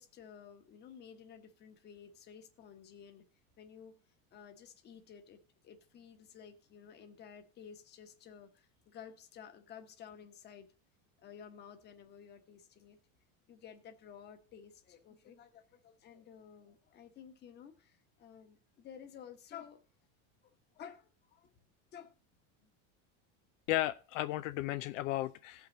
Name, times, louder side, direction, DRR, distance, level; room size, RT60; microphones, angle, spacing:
voice 1, 0.0-3.2 3.6-4.0 4.3-5.4 5.6-10.7 11.2-13.0 13.5-19.8 20.4-21.5 21.9-22.1 22.6-22.7, left 8 dB, 25° left, 1.2 m, -53 dB
voice 2, 23.7-25.7, left 16 dB, 70° left, 0.6 m, -34 dB
17.0 x 5.9 x 3.9 m
supercardioid pair, 165°, 39 cm